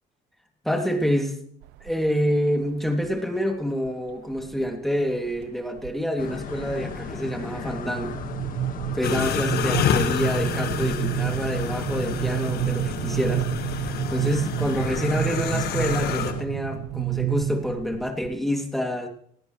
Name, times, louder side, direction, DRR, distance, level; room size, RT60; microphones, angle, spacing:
voice 1, 0.6-1.4 1.8-8.2 8.9-13.5 14.1-19.1, equal, ahead, 3 dB, 2.5 m, -27 dB
sound 1, 1.6-2.2 2.6-3.2 3.9-4.7 5.1-5.5 5.8-18.4, right 14 dB, 90° right, 0.6 m, -30 dB
sound 2, 6.2-16.4, left 7 dB, 55° left, 1.6 m, -36 dB
sound 3, 9.0-16.3, left 8 dB, 70° left, 1.5 m, -29 dB
18.5 x 18.0 x 3.2 m, 0.62 s
cardioid pair, 110°, 17 cm